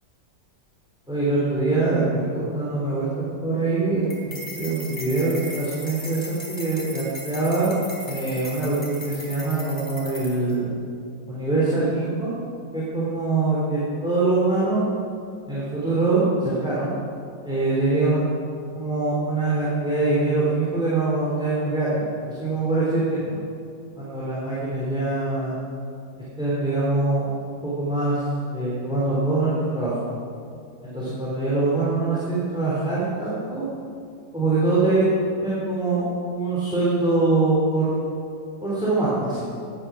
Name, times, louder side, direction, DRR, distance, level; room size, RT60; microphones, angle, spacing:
voice 1, 1.1-7.7 8.0-10.7 11.3-12.4 12.7-14.8 15.5-16.9 17.4-18.2 18.7-23.4 23.9-25.6 26.4-28.2 28.5-30.0 30.8-33.7 34.3-35.0 35.4-36.0 36.3-38.0 38.6-39.4, right 3 dB, ahead, -8 dB, 3.4 m, -23 dB
sound 1, 4.1-10.5, left 1 dB, 20° left, 2.8 m, -38 dB
17.0 x 9.9 x 6.3 m, 2.4 s
omnidirectional pair, 1.9 m